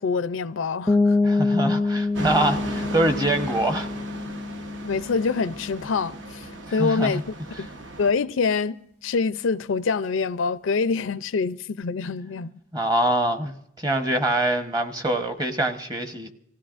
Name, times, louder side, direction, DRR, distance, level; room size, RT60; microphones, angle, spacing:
voice 1, 0.0-1.2 4.8-6.5 6.7-7.2 7.6-7.7 8.0-12.5, left 4 dB, 80° left, 0.5 m, -25 dB
sound 1, 0.9-6.5, left 3 dB, 10° left, 0.5 m, -26 dB
voice 2, 1.2-3.9 6.8-7.2 7.6-7.7 12.7-16.3, right 1 dB, 20° right, 0.9 m, -24 dB
sound 2, 2.1-8.1, right 2 dB, 65° right, 1.0 m, -37 dB
26.0 x 16.0 x 2.5 m
head